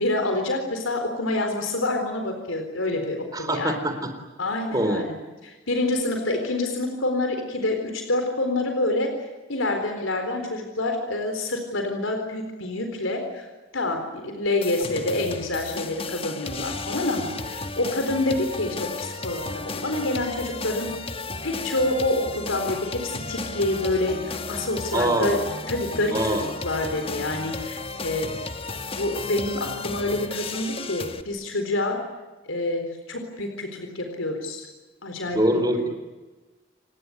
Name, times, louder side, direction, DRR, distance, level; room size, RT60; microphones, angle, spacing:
voice 1, 0.0-3.8 4.4-5.2 5.4-13.5 13.7-20.9 21.4-25.4 25.7-28.3 29.0-32.0 32.4-34.7 35.0-35.6, left 2 dB, 85° left, 5 dB, 4.1 m, -27 dB
voice 2, 3.3-3.9 4.7-5.0 24.9-25.4 26.1-26.4 35.3-35.9, right 1 dB, 20° right, 6 dB, 3.9 m, -23 dB
sound 1, 14.6-31.2, left 3 dB, 30° left, 1.3 m, -34 dB
28.5 x 19.5 x 9.9 m, 1.2 s
head